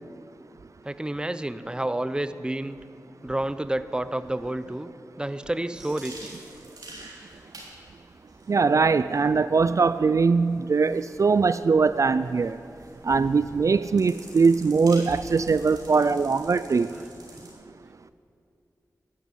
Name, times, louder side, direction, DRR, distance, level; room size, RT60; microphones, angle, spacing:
voice 1, 0.8-2.8 3.2-4.9 5.2-6.3 17.0-17.1, right 1 dB, 15° right, 13 dB, 0.6 m, -30 dB
sound 1, 5.7-17.5, right 1 dB, 85° right, 3.5 m, -47 dB
voice 2, 8.5-12.6 13.0-16.9, right 4 dB, 55° right, 14 dB, 0.3 m, -21 dB
14.0 x 11.0 x 8.9 m, 2.6 s
wide cardioid pair, 65°, 7 cm